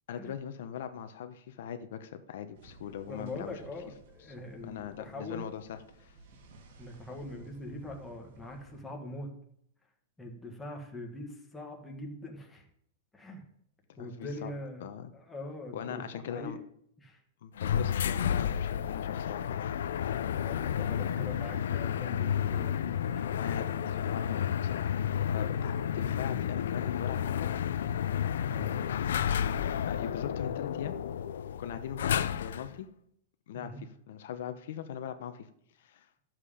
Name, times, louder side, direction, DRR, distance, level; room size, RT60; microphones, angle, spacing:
voice 1, 0.1-3.6 4.6-6.2 14.0-14.5 14.8-15.1 15.7-16.6 17.4-19.8 20.5-21.3 23.3-27.5 28.6-28.9 29.9-31.0 31.6-32.9 33.5-35.5 35.8-36.1, left 8 dB, 60° left, 9 dB, 0.9 m, -40 dB
sound 1, 2.5-8.8, right 2 dB, 55° right, 2.4 m, -55 dB
voice 2, 3.1-5.5 6.8-9.3 10.2-12.6 13.1-13.4 14.0-16.6 17.0-17.2 20.4-23.3 28.5-28.8 33.5-33.8, left 1 dB, 5° left, 1 dB, 1.4 m, -43 dB
sound 2, 17.6-32.8, left 9 dB, 85° left, 0.5 m, -31 dB
12.0 x 7.5 x 5.0 m, 0.70 s
supercardioid pair, 175°, 0 cm